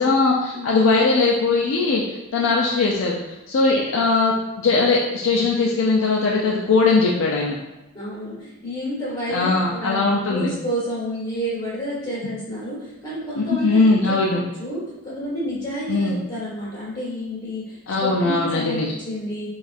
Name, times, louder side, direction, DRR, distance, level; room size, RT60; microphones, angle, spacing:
voice 1, 0.0-7.6 9.3-10.5 13.4-14.4 15.9-16.2 17.9-18.9, left 3 dB, 60° left, -2 dB, 0.4 m, -20 dB
voice 2, 7.9-14.0 14.3-19.5, equal, 20° left, -7 dB, 1.3 m, -30 dB
4.0 x 2.4 x 2.5 m, 1.0 s
head